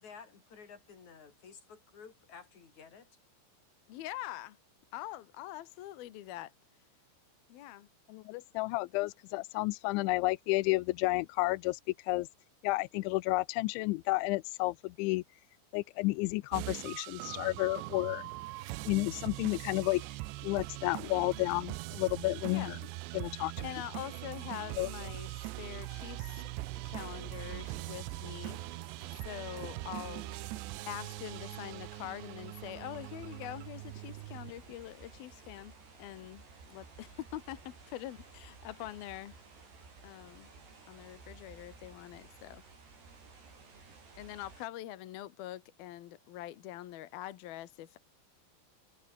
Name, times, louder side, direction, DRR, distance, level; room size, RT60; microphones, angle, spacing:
voice 1, 0.0-3.1, left 6 dB, 40° left, 5.0 m, -53 dB
voice 2, 3.9-4.6 4.9-6.5 7.5-7.9 22.5-22.7 23.6-26.5 26.8-28.6 29.2-30.4 30.9-36.4 36.7-39.3 40.0-40.5 40.9-42.6 44.2-48.0, left 14 dB, 65° left, 2.7 m, -44 dB
voice 3, 8.1-12.3 12.6-15.2 15.7-18.3 18.9-20.0 20.4-22.8 23.1-23.5 24.8-24.9, left 21 dB, 80° left, 2.8 m, -31 dB
sound 1, 16.5-34.5, right 20 dB, 90° right, 2.5 m, -42 dB
sound 2, 25.5-44.7, right 4 dB, 55° right, 10.0 m, -55 dB
omnidirectional pair, 5.7 m